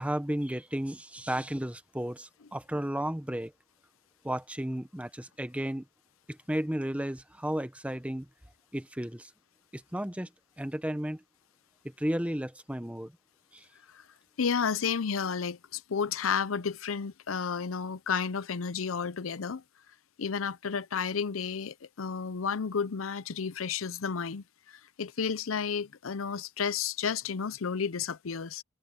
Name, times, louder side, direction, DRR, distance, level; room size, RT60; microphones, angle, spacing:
voice 1, 0.0-3.5 4.2-5.8 6.3-8.3 8.7-9.3 9.7-10.3 10.6-11.2 11.8-13.1 13.5-13.6, right 1 dB, 5° right, 1.0 m, -33 dB
voice 2, 14.4-19.6 20.2-24.4 25.0-28.6, left 6 dB, 90° left, 0.6 m, -31 dB
head